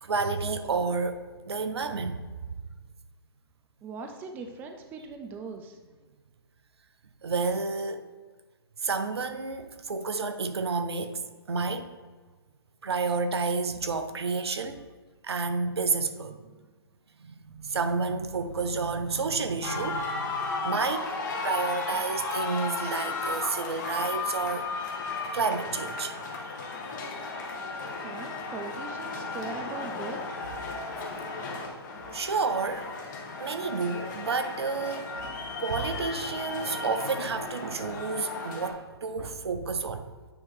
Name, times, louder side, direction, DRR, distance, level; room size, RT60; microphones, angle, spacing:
voice 1, 0.0-2.4 7.2-8.0 8.8-11.2 11.5-11.9 12.8-14.9 15.2-16.4 17.2-21.1 21.4-24.7 25.3-26.1 32.1-32.9 33.4-35.1 35.6-40.0, right 4 dB, 75° right, 9 dB, 0.6 m, -30 dB
voice 2, 3.8-5.8 28.0-30.2, right 4 dB, 15° right, 5 dB, 0.4 m, -40 dB
sound 1, 19.6-38.7, left 3 dB, 45° left, 1.1 m, -35 dB
8.8 x 3.0 x 3.6 m, 1.4 s
figure-of-eight pair, 130°, 14 cm